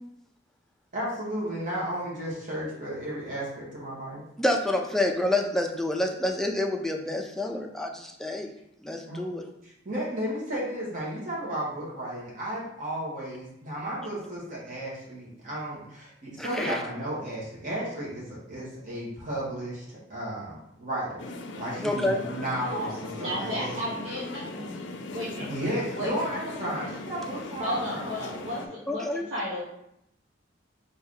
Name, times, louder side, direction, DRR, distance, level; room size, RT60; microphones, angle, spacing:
voice 1, 0.9-4.2 9.0-9.2 9.6-21.2 21.5-23.8 24.1-24.2 25.4-28.1, right 1 dB, 45° right, -6 dB, 1.4 m, -34 dB
voice 2, 4.4-8.5 8.8-9.4 16.4-16.8 21.8-22.2 28.9-29.3, left 1 dB, ahead, 2 dB, 0.4 m, -28 dB
sound 1, 21.2-28.7, left 2 dB, 70° left, 0.5 m, -39 dB
voice 3, 22.6-24.6 25.1-25.5 25.9-26.1 27.6-29.6, equal, 75° right, -8 dB, 1.2 m, -33 dB
4.5 x 2.6 x 3.7 m, 0.79 s
head